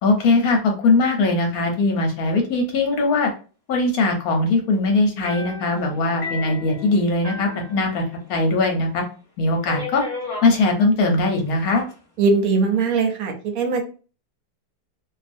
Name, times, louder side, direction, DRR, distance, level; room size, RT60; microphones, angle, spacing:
voice 1, 0.0-3.3 3.7-8.0 8.3-9.0 9.4-10.0 10.4-11.8, left 3 dB, 70° left, 2 dB, 1.0 m, -20 dB
sound 1, 5.2-8.4 8.7-8.8 9.6-10.5 11.5-11.9, left 2 dB, 30° left, 1.0 m, -34 dB
voice 2, 12.2-13.8, right 4 dB, 70° right, 3 dB, 1.0 m, -20 dB
2.6 x 2.3 x 2.5 m, 0.36 s
omnidirectional pair, 1.8 m